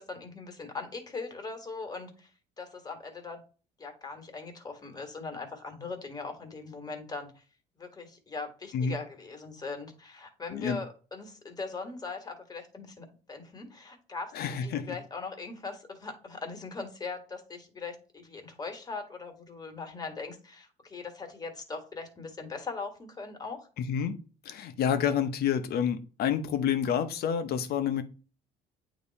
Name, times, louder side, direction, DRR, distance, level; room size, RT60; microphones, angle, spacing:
voice 1, 0.0-2.3 2.6-3.4 3.8-7.4 7.8-23.7, left 4 dB, 25° left, 1.7 m, -40 dB
voice 2, 14.3-14.9 23.8-24.2 24.4-28.0, left 8 dB, 70° left, 0.9 m, -28 dB
8.7 x 3.0 x 4.2 m
cardioid pair, 110°, 17 cm